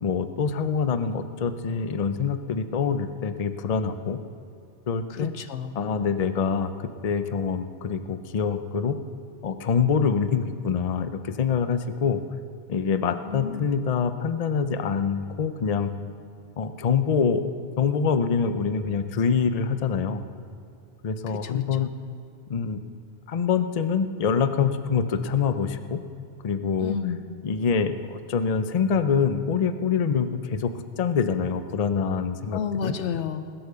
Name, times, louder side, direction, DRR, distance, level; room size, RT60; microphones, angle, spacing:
voice 1, 0.0-4.2 4.9-5.3 5.8-8.9 9.4-12.2 12.7-15.9 16.6-17.4 17.8-20.2 21.0-21.9 22.5-22.8 23.3-26.0 26.4-27.0 27.4-30.7 31.0-32.9, left 6 dB, 40° left, 10 dB, 0.6 m, -25 dB
voice 2, 5.1-5.8 13.2-13.7 21.3-21.9 26.8-27.2 32.5-33.5, left 7 dB, 85° left, 10 dB, 1.1 m, -31 dB
20.5 x 8.3 x 6.7 m, 2.3 s
omnidirectional pair, 1.2 m